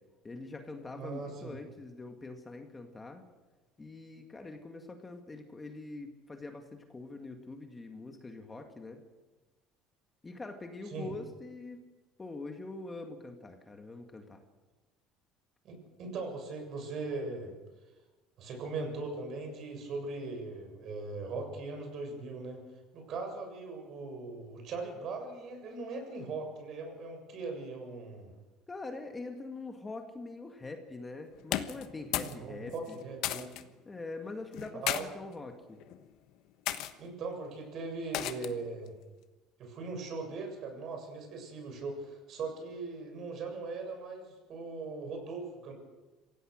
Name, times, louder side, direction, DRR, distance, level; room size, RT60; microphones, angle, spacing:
voice 1, 0.2-3.2 3.8-9.0 10.2-11.8 12.2-14.4 28.7-33.0 33.9-35.8, left 3 dB, 15° left, 4 dB, 2.1 m, -44 dB
voice 2, 0.9-1.5 10.9-11.1 15.6-17.5 18.4-22.6 22.9-28.3 32.2-33.5 34.8-35.0 37.0-38.9 39.6-45.7, right 3 dB, 50° right, 4 dB, 7.4 m, -39 dB
sound 1, 31.4-32.4 32.7-33.6 34.5-35.0 35.8-36.1 36.7-36.9 38.1-38.6, left 13 dB, 70° left, 1.2 m, -34 dB
26.5 x 17.0 x 6.5 m, 1.2 s
cardioid pair, 125°, 0 cm